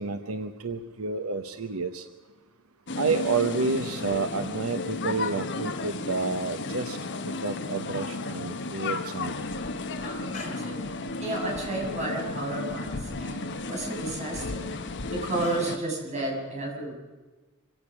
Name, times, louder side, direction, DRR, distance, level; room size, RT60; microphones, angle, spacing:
voice 1, 0.0-2.1 2.9-7.0 7.4-9.5, right 4 dB, 85° right, 9 dB, 1.0 m, -30 dB
sound 1, 2.9-15.8, left 3 dB, 55° left, 1.2 m, -34 dB
sound 2, 9.5-9.6 10.1-11.0 11.3-11.4 11.6-12.5 12.7-12.8 13.1-13.2 13.9-14.9 15.4-15.9, left 3 dB, 35° left, 4.4 m, -47 dB
voice 2, 10.0-10.8 11.2-14.7 15.1-16.9, right 2 dB, 35° right, -2 dB, 7.3 m, -32 dB
25.5 x 17.0 x 6.3 m, 1.2 s
head